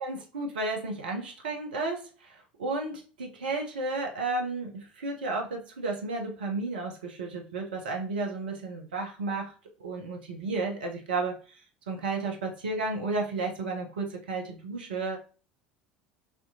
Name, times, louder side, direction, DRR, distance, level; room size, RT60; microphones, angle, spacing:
voice 1, 0.0-9.5 9.8-11.3 11.9-15.2, right 3 dB, 70° right, 2 dB, 0.7 m, -32 dB
4.2 x 2.8 x 2.7 m, 0.36 s
figure-of-eight pair, 70°, 5 cm